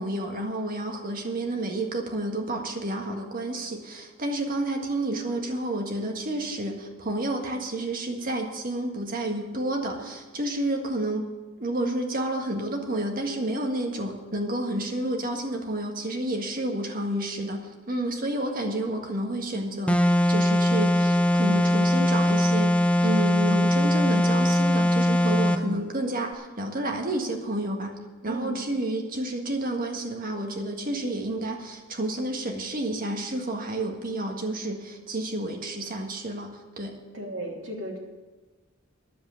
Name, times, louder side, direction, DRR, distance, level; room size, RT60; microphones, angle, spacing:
voice 1, 0.0-11.3 11.6-28.0 28.2-37.0, right 1 dB, 45° right, 2 dB, 1.7 m, -30 dB
sound 1, 19.9-25.7, left 1 dB, 5° left, 0.5 m, -21 dB
voice 2, 28.2-28.7 37.1-38.0, right 1 dB, 65° right, -1 dB, 2.8 m, -35 dB
10.5 x 7.8 x 8.6 m, 1.3 s
head